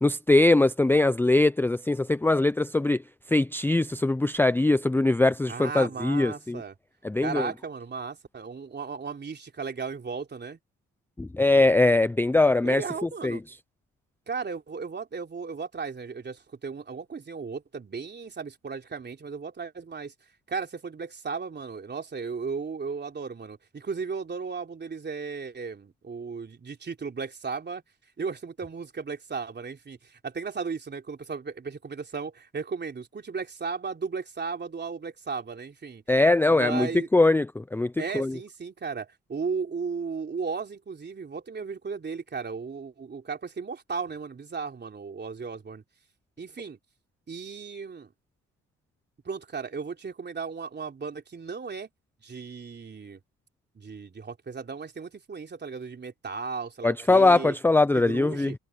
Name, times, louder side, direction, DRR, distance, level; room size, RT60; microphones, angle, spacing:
voice 1, 0.0-3.0 3.3-6.6 7.0-7.5 11.2-12.8 13.2-13.4 36.1-36.9 37.1-38.3 56.8-58.5, left 2 dB, 5° left, 0.4 m, -22 dB
voice 2, 5.5-6.7 7.2-10.6 12.6-13.4 14.3-20.1 20.5-27.8 28.2-36.0 36.5-37.1 38.0-45.8 46.4-46.8 47.3-48.1 49.2-51.9 52.2-53.2 53.7-57.5 57.9-58.5, right 5 dB, 35° right, 3.4 m, -35 dB
cardioid pair, 90°, 30 cm